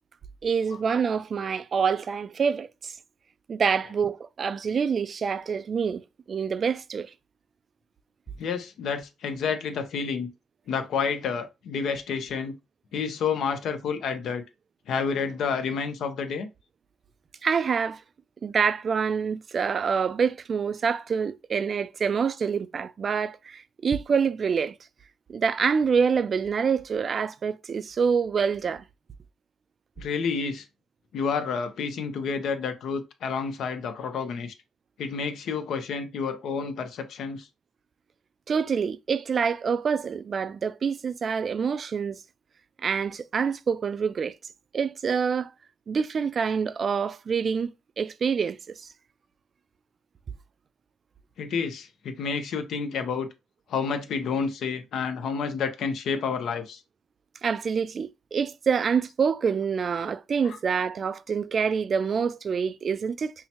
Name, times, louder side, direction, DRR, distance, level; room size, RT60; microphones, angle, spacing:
voice 1, 0.4-2.9 3.5-6.0 6.3-7.1 17.4-18.0 18.4-24.8 25.3-28.8 38.5-42.2 42.8-44.4 44.7-45.5 45.9-47.7 48.0-48.6 57.4-63.3, right 6 dB, 45° right, 0.3 m, -26 dB
voice 2, 8.4-10.3 10.7-12.5 12.9-14.4 14.9-16.5 30.0-30.7 31.1-34.5 35.0-37.5 51.4-53.3 53.7-56.8 60.4-60.6, left 5 dB, 70° left, 0.7 m, -29 dB
5.6 x 2.1 x 2.9 m
cardioid pair, 90°, 0 cm